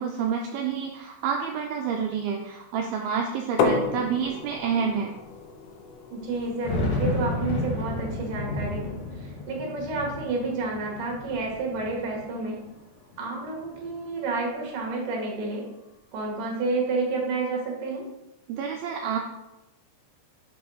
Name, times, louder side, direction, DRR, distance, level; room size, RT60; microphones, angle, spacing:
voice 1, 0.0-5.1 18.5-19.2, right 6 dB, 85° right, 2 dB, 2.2 m, -28 dB
sound 1, 2.7-2.8 3.0-3.1 4.0-4.1 4.5-4.6 6.3-12.7 13.1-14.0, left 2 dB, 50° left, 2.5 m, -32 dB
sound 2, 3.6-9.2, left 4 dB, 75° left, 2.2 m, -32 dB
voice 2, 6.1-12.6 13.2-15.7 16.1-18.0, right 3 dB, 60° right, -1 dB, 2.8 m, -30 dB
6.4 x 4.7 x 5.5 m, 0.92 s
omnidirectional pair, 5.0 m